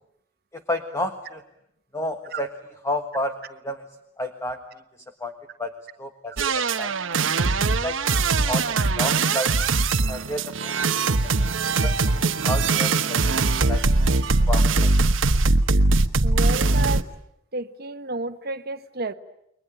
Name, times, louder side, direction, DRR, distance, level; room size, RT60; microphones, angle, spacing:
voice 1, 0.5-1.4 1.9-3.8 4.2-4.6 5.2-5.3 5.6-5.7 6.0-6.3 6.8-6.9 7.8-8.2 8.5-9.5 10.1-10.9 11.2-11.3 11.6-11.9 12.4-13.2 13.7-13.8 14.5-14.9, left 1 dB, 15° left, 1.5 m, -30 dB
sound 1, 6.4-17.0, right 3 dB, 85° right, 1.1 m, -21 dB
voice 2, 16.2-17.1 17.5-19.1, right 3 dB, 55° right, 1.3 m, -31 dB
29.5 x 22.5 x 9.0 m
head